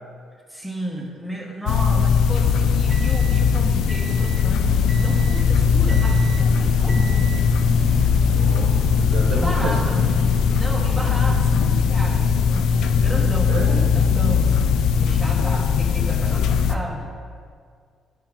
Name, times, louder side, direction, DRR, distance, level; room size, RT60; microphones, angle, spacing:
voice 1, 0.5-7.4 9.3-10.0 10.6-17.2, right 1 dB, 5° right, -1 dB, 1.3 m, -33 dB
sound 1, 1.7-16.8, left 6 dB, 85° left, 0.4 m, -19 dB
sound 2, 2.5-4.5 4.9-5.5 5.9-6.5 6.9-7.5 8.3-8.6, right 5 dB, 20° right, 0.8 m, -40 dB
sound 3, 4.6-11.6, right 5 dB, 50° right, 0.4 m, -33 dB
voice 2, 8.2-9.9 13.5-13.8, right 3 dB, 75° right, 0 dB, 1.0 m, -30 dB
9.5 x 4.6 x 3.7 m, 2.1 s
cardioid pair, 90°, 0 cm